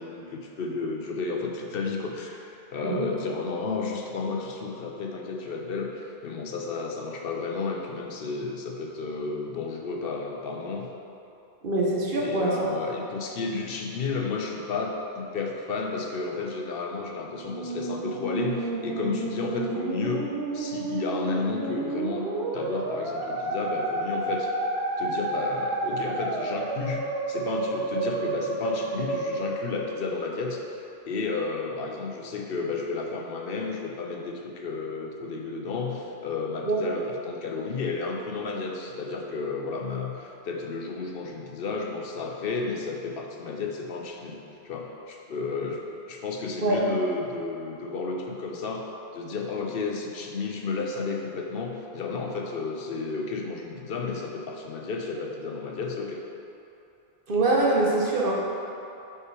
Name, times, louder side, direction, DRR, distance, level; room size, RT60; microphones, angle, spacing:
voice 1, 0.0-10.9 12.2-20.3 20.5-22.3 22.5-24.5 25.0-44.4 44.6-56.2, left 4 dB, 70° left, 1 dB, 0.8 m, -32 dB
voice 2, 11.6-12.7 36.7-36.8 46.6-46.8 57.3-58.4, right 2 dB, 60° right, -4 dB, 1.1 m, -24 dB
Musical instrument, 17.2-30.6, right 2 dB, 80° right, 0.9 m, -31 dB
5.5 x 4.8 x 4.7 m, 2.8 s
omnidirectional pair, 1.0 m